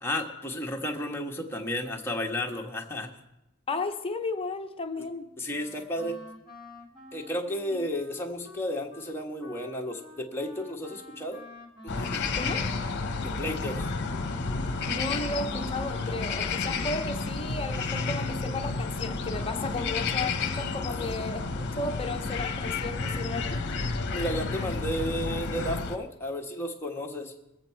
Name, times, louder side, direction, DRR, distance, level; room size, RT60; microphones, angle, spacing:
voice 1, 0.0-3.1 5.4-6.2 7.1-11.4 11.8-12.3 13.2-13.9 20.9-21.2 24.1-27.3, left 1 dB, 10° left, 0 dB, 1.4 m, -33 dB
voice 2, 3.7-5.3 12.3-12.6 14.9-23.8, left 2 dB, 25° left, 6 dB, 0.8 m, -34 dB
Wind instrument woodwind instrument, 5.5-13.0, left 2 dB, 25° right, 2.4 m, -49 dB
sound 1, 11.9-26.0, left 4 dB, 55° left, 0.9 m, -31 dB
21.5 x 8.0 x 4.5 m, 0.90 s
head